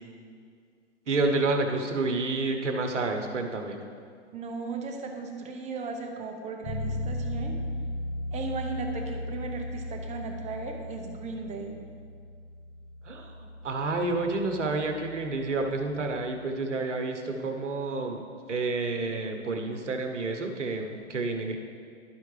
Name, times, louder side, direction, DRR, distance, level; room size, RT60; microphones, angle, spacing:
voice 1, 1.1-3.8 13.0-21.6, right 3 dB, 85° right, 4 dB, 1.0 m, -29 dB
voice 2, 4.3-7.6 8.3-11.8, right 4 dB, 20° right, 3 dB, 0.8 m, -36 dB
Bass guitar, 6.6-16.4, left 1 dB, 80° left, 1.1 m, -37 dB
12.0 x 4.6 x 3.2 m, 2.2 s
hypercardioid pair, 115°, 36 cm